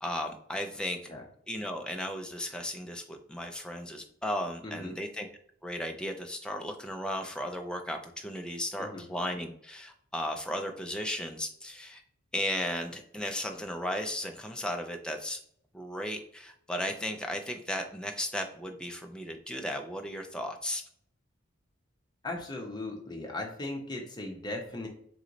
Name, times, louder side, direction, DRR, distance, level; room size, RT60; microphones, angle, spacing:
voice 1, 0.0-1.0 1.5-5.3 5.6-12.0 12.3-15.4 15.7-20.8, left 1 dB, 5° left, 4 dB, 0.4 m, -35 dB
voice 2, 4.6-5.0 8.8-9.0 22.2-24.9, left 2 dB, 20° left, 0 dB, 0.8 m, -38 dB
3.9 x 3.1 x 3.9 m, 0.65 s
head